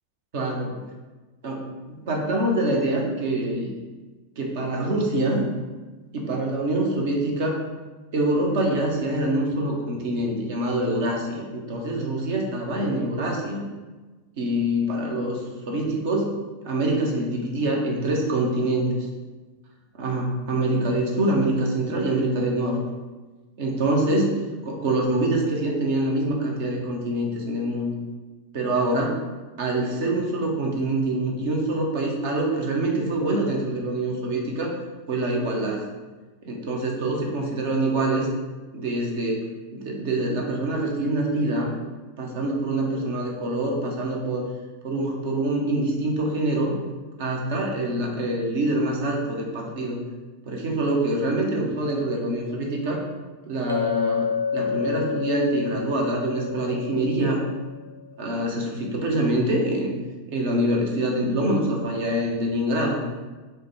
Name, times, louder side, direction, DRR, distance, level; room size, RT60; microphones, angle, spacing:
voice 1, 0.3-0.8 1.4-3.7 4.4-5.4 6.1-7.6 8.1-13.6 14.4-16.3 16.6-18.9 20.0-22.8 23.6-24.3 24.7-27.9 28.5-29.2 29.6-34.7 35.1-35.8 36.4-38.3 38.7-39.5 39.7-41.7 42.2-44.4 44.8-46.8 47.2-50.0 50.5-53.0 53.5-57.4 58.2-59.9 60.3-63.1, right 1 dB, 50° right, 0 dB, 0.9 m, -25 dB
Chink clink, 53.7-57.9, left 6 dB, 85° right, 0.6 m, -29 dB
4.9 x 2.3 x 4.1 m, 1.2 s
figure-of-eight pair, 90°, 0 cm